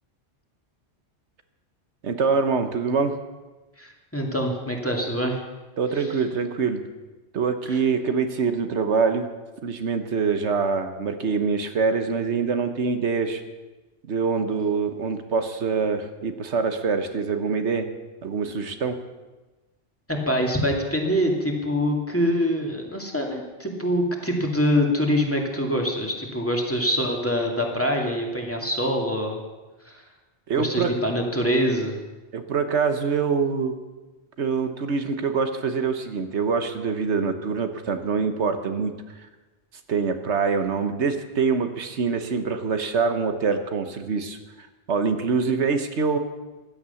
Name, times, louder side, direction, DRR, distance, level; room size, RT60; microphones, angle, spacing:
voice 1, 2.0-3.2 5.8-6.8 7.3-9.3 9.6-13.4 14.1-17.9 18.2-19.0 30.5-30.9 32.3-33.7 34.4-38.9 39.9-44.4 44.9-46.2, right 5 dB, 80° right, 8 dB, 1.4 m, -24 dB
voice 2, 3.8-5.4 5.9-6.2 7.7-7.8 20.1-29.4 29.8-30.0 30.5-32.0, equal, 10° left, 0 dB, 2.5 m, -25 dB
15.5 x 12.0 x 7.0 m, 1.2 s
omnidirectional pair, 1.2 m